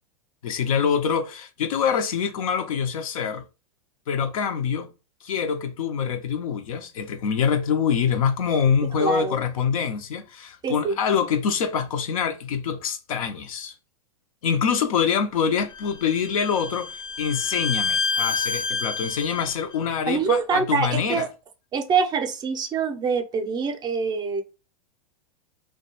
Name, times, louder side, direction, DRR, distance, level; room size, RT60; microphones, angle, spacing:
voice 1, 0.4-3.4 4.1-4.9 5.2-13.7 14.4-21.3, left 7 dB, 75° left, 0.5 m, -25 dB
voice 2, 9.0-9.3 10.6-11.0 20.1-21.3 21.7-24.4, right 5 dB, 25° right, 0.5 m, -25 dB
Bowed string instrument, 15.7-19.5, left 4 dB, 25° left, 0.5 m, -28 dB
2.3 x 2.2 x 2.8 m
hypercardioid pair, 115°, 18 cm